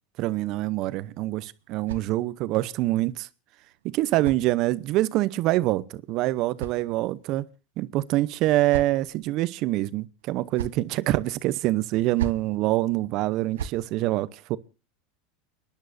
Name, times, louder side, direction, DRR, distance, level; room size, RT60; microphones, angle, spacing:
voice 1, 0.2-3.3 3.8-7.5 7.8-14.6, right 16 dB, 55° right, 0.8 m, -25 dB
sound 1, 1.0-2.6 3.6-5.1 6.0-7.4 8.2-9.3 10.2-10.9 11.9-12.6 13.3-13.9, right 8 dB, 85° right, 0.9 m, -39 dB
30.0 x 10.5 x 2.7 m
hypercardioid pair, 105°, 0 cm